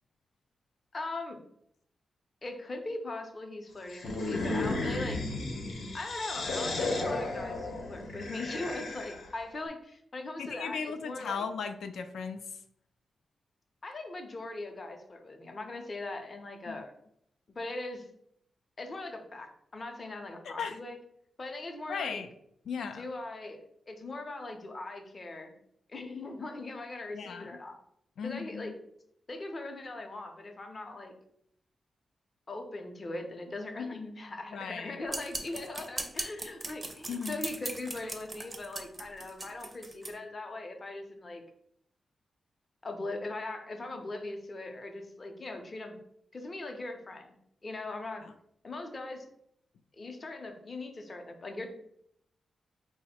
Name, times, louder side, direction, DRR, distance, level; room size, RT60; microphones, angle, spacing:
voice 1, 0.9-1.4 2.4-5.2 5.9-11.4 13.8-16.9 17.5-18.1 18.8-21.0 21.4-22.2 22.9-23.6 23.9-25.6 25.9-27.8 28.2-28.7 29.3-31.1 32.5-41.4 42.8-46.0 46.3-47.3 47.6-48.2 48.6-49.2 50.0-51.7, left 2 dB, 30° left, 4 dB, 0.5 m, -40 dB
sound 1, 3.9-9.4, left 2 dB, 65° left, 0.8 m, -34 dB
voice 2, 10.4-12.5 16.7-16.8 20.4-20.8 21.9-22.3 22.7-23.1 27.1-27.5 28.2-28.8 34.5-35.0 37.1-37.4 48.2-48.3, left 6 dB, 85° left, 7 dB, 0.3 m, -37 dB
sound 2, 35.1-40.1, right 2 dB, 20° right, 0.4 m, -39 dB
4.6 x 2.0 x 4.2 m, 0.71 s
wide cardioid pair, 180°, 0 cm